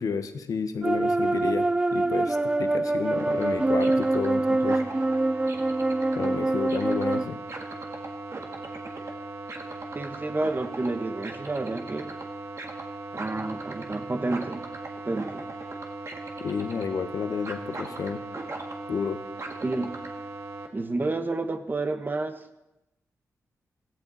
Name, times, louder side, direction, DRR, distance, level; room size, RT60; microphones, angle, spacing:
voice 1, 0.0-1.6 1.9-4.8 6.2-7.4 16.4-18.2 18.9-19.2, left 5 dB, 70° left, 9 dB, 1.2 m, -31 dB
sound 1, 0.8-7.2, right 2 dB, 15° right, 0.4 m, -25 dB
sound 2, 3.1-20.7, right 3 dB, 55° right, 1.8 m, -38 dB
voice 2, 9.9-12.1 13.1-14.6 15.0-15.4 19.6-19.9 20.7-22.4, right 2 dB, 35° right, 8 dB, 1.3 m, -30 dB
16.5 x 15.0 x 4.2 m, 0.94 s
cardioid pair, 75°, 6 cm